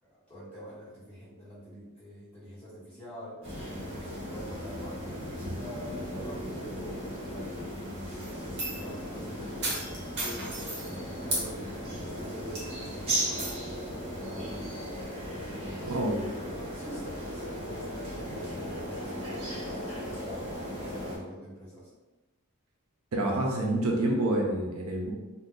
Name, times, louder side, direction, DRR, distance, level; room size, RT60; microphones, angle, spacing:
voice 1, 0.0-5.1 5.4-13.7 14.2-14.8 15.3-20.5 20.8-21.9, equal, 5° left, -11 dB, 1.4 m, -45 dB
sound 1, 3.4-21.2, equal, 30° right, 1.1 m, -37 dB
sound 2, 8.2-8.9 9.6-10.9 11.3-11.5 12.0-12.1 12.6-12.9 13.4-13.5, right 2 dB, 50° right, 1.0 m, -34 dB
voice 2, 15.9-16.2 23.1-25.1, right 1 dB, 70° right, 0 dB, 0.5 m, -27 dB
2.6 x 2.2 x 3.7 m, 1.2 s
head